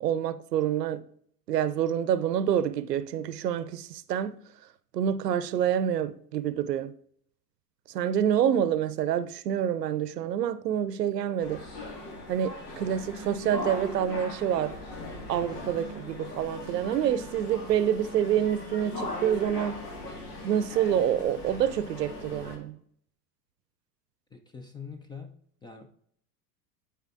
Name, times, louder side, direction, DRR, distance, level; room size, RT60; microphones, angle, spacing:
voice 1, 0.0-1.0 1.5-4.4 4.9-6.9 7.9-11.6 12.3-14.8 15.3-19.8 20.4-22.8, right 9 dB, 80° right, 0.7 m, -27 dB
sound 1, 11.4-22.6, left 1 dB, 75° left, 1.9 m, -39 dB
voice 2, 24.3-25.3 25.6-25.9, left 5 dB, 10° left, 0.4 m, -43 dB
11.0 x 4.6 x 2.5 m
hypercardioid pair, 85°, 48 cm